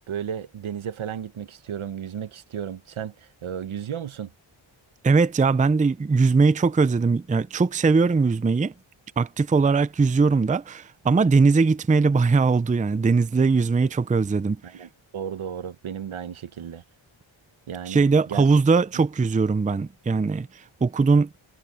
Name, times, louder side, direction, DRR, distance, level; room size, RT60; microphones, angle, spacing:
voice 1, 0.0-4.3 13.8-13.9 14.6-16.8 17.7-18.5, right 8 dB, 75° right, 1.1 m, -34 dB
voice 2, 5.0-8.7 9.2-14.6 17.9-21.3, right 4 dB, 15° right, 0.5 m, -20 dB
wide cardioid pair, 100°, 49 cm